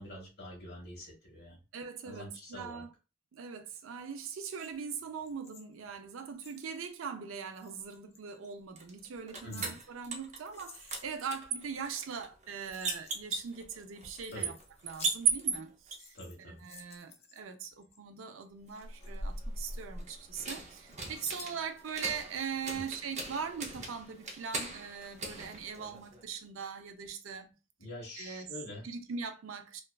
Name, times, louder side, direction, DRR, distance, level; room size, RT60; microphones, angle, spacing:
voice 1, 0.0-1.6 2.0-2.8 9.4-9.7 14.3-14.5 16.1-16.6 22.7-22.8 27.8-28.8, left 1 dB, 55° left, 1.3 m, -45 dB
voice 2, 1.7-2.9 3.3-14.6 14.8-27.5 28.2-28.5 28.8-29.8, right 6 dB, 85° right, 0.5 m, -41 dB
sound 1, 4.0-6.8 7.5-8.5 9.1-11.3 12.2-12.3 12.5-13.5 13.9-15.6 15.9-18.0 18.4-19.9 20.2-21.9 22.2-22.3, left 5 dB, 30° left, 0.4 m, -54 dB
sound 2, 8.8-10.6 10.9-16.0 18.7-26.2, right 5 dB, 35° right, 0.5 m, -38 dB
2.9 x 2.3 x 2.3 m
head